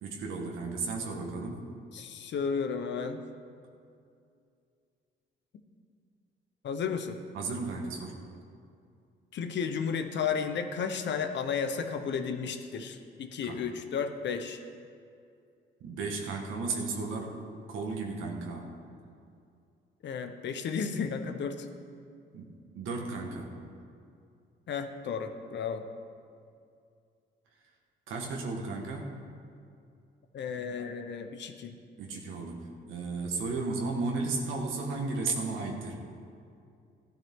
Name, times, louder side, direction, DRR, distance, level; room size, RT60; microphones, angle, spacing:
voice 1, 0.0-1.6 7.3-8.2 13.4-13.6 15.8-18.7 22.3-23.5 28.1-29.1 32.0-36.0, right 3 dB, 85° right, 0 dB, 1.7 m, -34 dB
voice 2, 1.9-3.2 6.6-7.2 9.3-14.6 20.0-21.7 24.7-25.9 30.3-31.7, left 6 dB, 65° left, 7 dB, 1.0 m, -33 dB
15.0 x 11.5 x 3.8 m, 2.4 s
cardioid pair, 90°, 20 cm